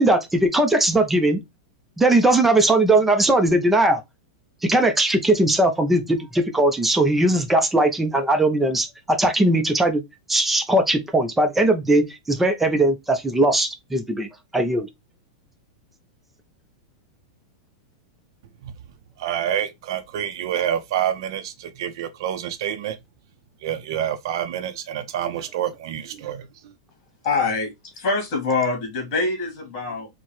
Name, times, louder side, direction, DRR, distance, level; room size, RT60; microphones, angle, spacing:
voice 1, 0.0-1.4 2.0-4.0 4.6-10.0 10.3-14.3 14.5-14.9, right 1 dB, 5° right, 0.5 m, -19 dB
voice 2, 19.2-23.0 23.6-26.7, right 10 dB, 60° right, 0.5 m, -27 dB
voice 3, 27.2-30.1, left 3 dB, 40° left, 2.0 m, -24 dB
4.5 x 2.1 x 3.0 m
supercardioid pair, 160°, 3 cm